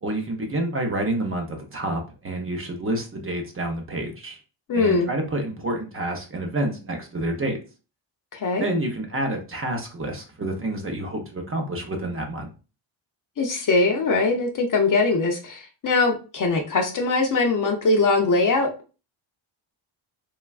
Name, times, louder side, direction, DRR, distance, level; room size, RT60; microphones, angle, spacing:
voice 1, 0.0-4.4 4.7-7.6 8.6-12.5, right 1 dB, 25° right, 2 dB, 0.6 m, -28 dB
voice 2, 4.7-5.1 8.3-8.7 13.4-18.7, left 3 dB, 40° left, 3 dB, 0.5 m, -21 dB
3.2 x 2.3 x 2.3 m, 0.33 s
cardioid pair, 125°, 50 cm